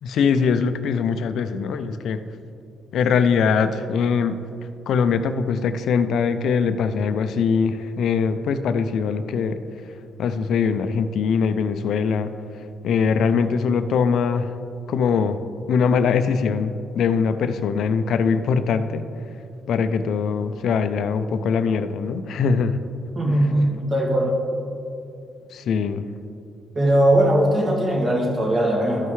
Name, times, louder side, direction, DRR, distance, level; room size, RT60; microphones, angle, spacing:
voice 1, 0.0-2.2 2.9-4.4 4.9-14.6 14.9-15.4 15.7-19.0 19.7-22.8 25.5-26.1, left 6 dB, 70° left, 10 dB, 0.5 m, -22 dB
voice 2, 23.2-24.3 26.8-29.1, right 1 dB, 35° right, -2 dB, 2.0 m, -20 dB
13.0 x 5.5 x 3.2 m, 2.6 s
cardioid pair, 90°, 0 cm